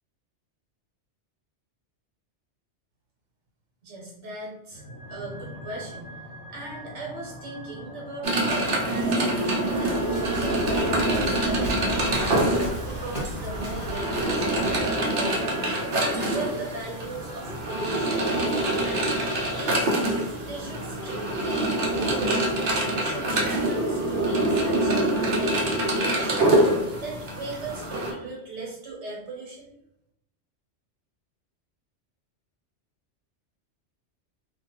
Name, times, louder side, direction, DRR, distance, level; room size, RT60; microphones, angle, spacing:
voice 1, 3.8-4.8 5.1-6.1 6.5-18.2 18.8-19.2 19.5-22.5 22.8-24.9 25.3-29.7, right 2 dB, 85° right, -3 dB, 1.0 m, -38 dB
sound 1, 4.7-19.8, equal, 80° left, 1.0 m, -43 dB
sound 2, 8.2-28.1, right 1 dB, 55° right, 0.7 m, -25 dB
Waves surf, 9.7-14.9, equal, 50° left, 1.1 m, -35 dB
2.4 x 2.2 x 2.8 m, 0.80 s
omnidirectional pair, 1.2 m